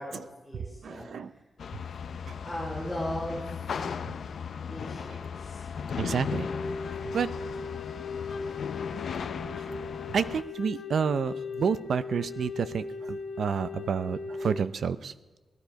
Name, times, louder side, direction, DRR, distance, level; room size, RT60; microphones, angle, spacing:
voice 1, 0.0-1.4 2.4-3.9 4.7-5.7, equal, 5° right, -6 dB, 3.8 m, -38 dB
voice 2, 0.8-1.3 6.0-6.5 7.1-7.3 10.1-15.1, right 6 dB, 70° right, 14 dB, 0.6 m, -29 dB
sound 1, 1.6-10.4, left 6 dB, 70° left, 0.6 m, -36 dB
Wind instrument woodwind instrument, 6.0-14.7, left 4 dB, 90° left, 1.4 m, -38 dB
18.0 x 12.5 x 5.2 m, 1.2 s
wide cardioid pair, 175°, 0 cm